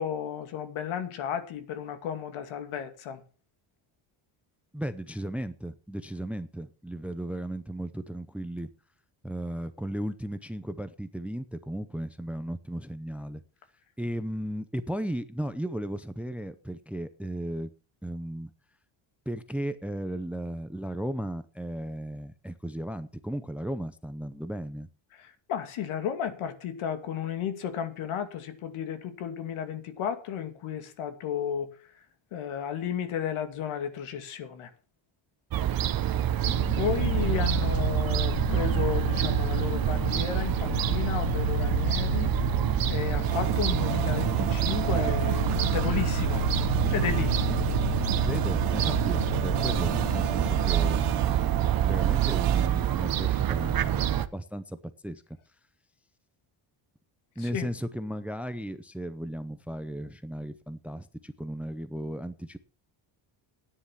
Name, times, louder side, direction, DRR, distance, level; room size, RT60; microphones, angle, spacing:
voice 1, 0.0-3.2 25.5-31.7 32.3-34.7 36.7-42.3 42.9-46.5 46.9-47.4 57.5-57.7, left 9 dB, 75° left, 2.5 m, -33 dB
voice 2, 4.7-8.7 9.2-13.4 14.0-17.7 18.0-18.5 19.3-24.9 37.2-37.4 48.2-54.8 55.0-55.2 57.4-62.6, right 1 dB, 5° right, 0.6 m, -35 dB
Fowl / Gull seagull, 35.5-54.3, right 11 dB, 45° right, 1.0 m, -27 dB
sound 1, 36.4-52.3, left 6 dB, 60° left, 3.5 m, -34 dB
sound 2, 43.2-52.7, right 13 dB, 80° right, 1.8 m, -35 dB
13.5 x 10.0 x 5.8 m
cardioid pair, 155°, 49 cm